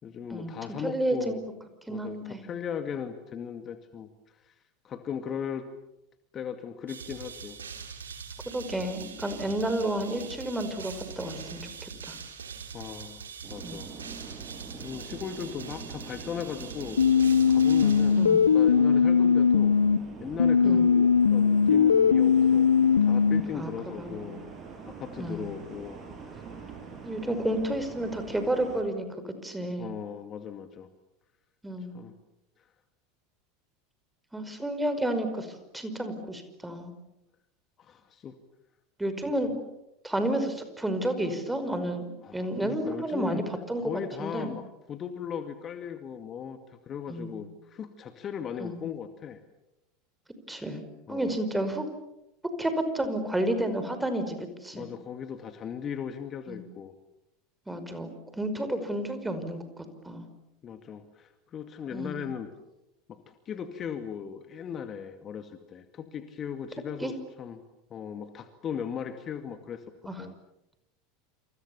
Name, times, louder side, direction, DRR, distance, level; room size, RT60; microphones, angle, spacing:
voice 1, 0.0-1.4 1.9-4.5 4.8-5.6 6.3-7.6 12.7-13.2 13.5-13.9 14.7-19.7 20.2-24.4 24.9-26.0 27.2-27.4 29.8-30.9 31.9-32.2 37.8-38.4 39.4-39.5 42.2-43.4 43.8-44.6 44.9-49.4 51.1-51.4 54.7-56.9 60.6-62.5 63.1-67.6 67.9-69.8 70.2-70.3, left 8 dB, 30° left, 8 dB, 2.2 m, -38 dB
voice 2, 0.8-1.4 1.9-2.4 8.5-12.2 13.6-13.9 18.2-18.5 20.6-20.9 23.5-24.4 25.2-25.5 27.0-29.9 31.6-31.9 34.3-36.9 39.0-39.5 40.0-43.4 43.7-44.5 47.1-47.4 48.6-48.8 50.5-50.8 51.1-51.9 52.6-54.9 56.5-56.6 57.7-59.6 60.0-60.2 61.9-62.3 67.0-67.1 70.1-70.2, right 1 dB, 5° right, 8 dB, 5.3 m, -31 dB
sound 1, 6.9-18.8, right 6 dB, 75° right, 3.5 m, -43 dB
sound 2, 13.4-28.8, right 5 dB, 30° right, 7.9 m, -44 dB
sound 3, 17.0-20.0 20.4-23.4, left 6 dB, 75° left, 1.1 m, -20 dB
29.0 x 28.5 x 7.2 m, 0.89 s
figure-of-eight pair, 80°, 0 cm